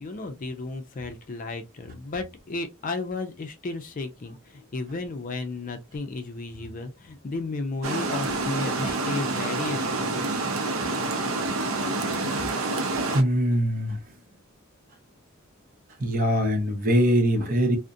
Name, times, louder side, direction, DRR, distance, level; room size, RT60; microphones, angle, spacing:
voice 1, 0.0-10.3, left 3 dB, 40° left, 0.4 m, -33 dB
Water, 7.8-13.2, right 2 dB, 85° right, 0.6 m, -27 dB
voice 2, 12.2-14.0 16.0-17.8, equal, 45° right, 0.7 m, -24 dB
2.4 x 2.1 x 2.5 m
head